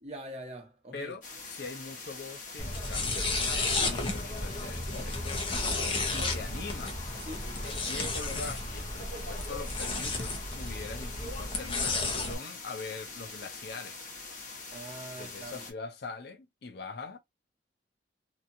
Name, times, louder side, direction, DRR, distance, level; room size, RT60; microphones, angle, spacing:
voice 1, 0.0-1.1 6.1-6.4 7.2-7.5 14.7-15.7, right 1 dB, 35° right, 1.1 m, -43 dB
voice 2, 0.9-5.4 5.9-7.0 7.6-14.0 15.1-17.2, left 4 dB, 65° left, 0.6 m, -43 dB
sound 1, 1.2-15.7, left 3 dB, 45° left, 1.2 m, -44 dB
sound 2, 2.6-12.3, left 2 dB, 30° left, 0.8 m, -33 dB
2.8 x 2.4 x 2.7 m
head